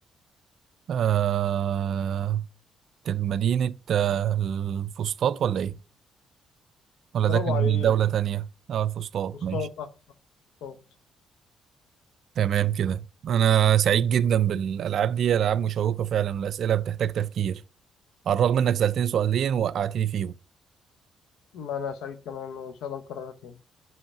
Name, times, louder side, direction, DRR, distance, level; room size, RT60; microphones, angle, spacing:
voice 1, 0.9-2.4 3.1-5.8 7.1-9.6 12.4-17.6 18.3-20.3, right 9 dB, 65° right, 0.3 m, -24 dB
voice 2, 7.3-7.9 9.5-9.9 10.6-10.8 21.5-23.6, left 6 dB, 85° left, 0.9 m, -33 dB
5.6 x 5.3 x 5.6 m
cardioid pair, 90°, 0 cm